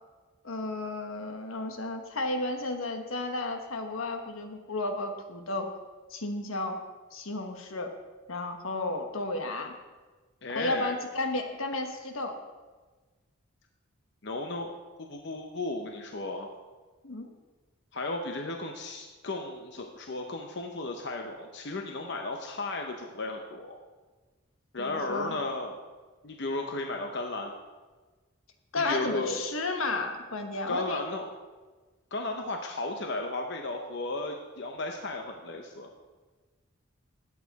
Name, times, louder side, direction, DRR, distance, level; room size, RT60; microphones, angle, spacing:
voice 1, 0.4-5.7 6.1-6.8 7.1-7.9 8.3-9.7 10.5-12.4 17.0-17.3 24.8-25.4 28.7-31.0, left 2 dB, 80° left, 5 dB, 1.2 m, -33 dB
voice 2, 10.4-10.9 14.2-14.7 15.0-16.5 17.9-23.8 24.7-25.8 26.2-27.5 28.8-29.4 30.7-31.3 32.1-35.9, left 2 dB, 55° left, 3 dB, 0.8 m, -34 dB
13.5 x 8.6 x 4.1 m, 1.3 s
head